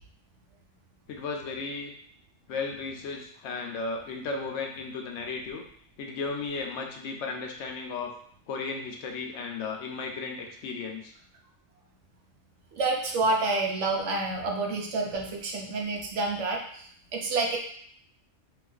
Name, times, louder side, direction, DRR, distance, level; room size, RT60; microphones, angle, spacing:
voice 1, 1.1-1.9 2.5-5.6 6.0-8.1 8.5-11.1, left 4 dB, 75° left, 3 dB, 0.9 m, -35 dB
voice 2, 12.7-17.6, right 3 dB, 80° right, 1 dB, 1.0 m, -28 dB
4.0 x 2.4 x 2.3 m, 0.62 s
omnidirectional pair, 1.2 m